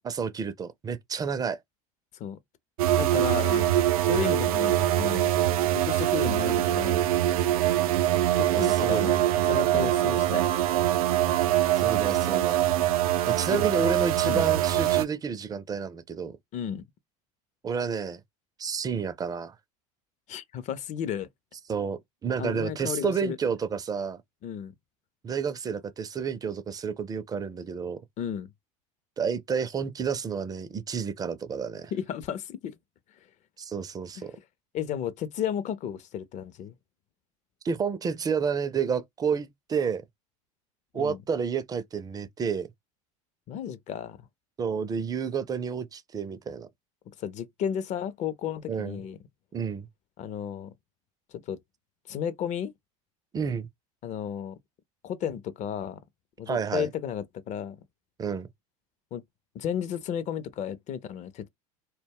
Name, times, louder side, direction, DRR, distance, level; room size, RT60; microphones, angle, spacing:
voice 1, 0.0-1.6 4.1-4.3 8.5-9.2 11.8-12.7 13.2-16.4 17.6-18.2 18.6-19.5 21.7-24.2 25.2-28.0 29.2-31.9 33.6-34.3 37.6-40.0 40.9-42.7 44.6-46.7 48.7-49.0 49.5-49.9 53.3-53.7 56.5-56.9 58.2-58.5, right 6 dB, 20° right, 0.4 m, -30 dB
sound 1, 2.8-15.0, right 13 dB, 80° right, 0.4 m, -24 dB
voice 2, 3.0-3.7 4.0-5.3 5.7-7.1 8.3-9.2 9.5-10.4 13.5-13.6 14.2-14.4 16.5-16.8 20.3-21.3 22.4-23.4 24.4-24.7 28.2-28.5 31.9-32.7 34.2-34.3 34.7-36.7 40.9-41.2 43.5-44.2 47.2-49.2 50.2-50.7 51.3-51.6 52.1-52.7 54.0-54.6 55.0-56.0 56.4-57.8 59.1-59.2 59.5-61.5, left 9 dB, 40° left, 0.5 m, -33 dB
2.2 x 2.1 x 3.4 m
hypercardioid pair, 90°, 18 cm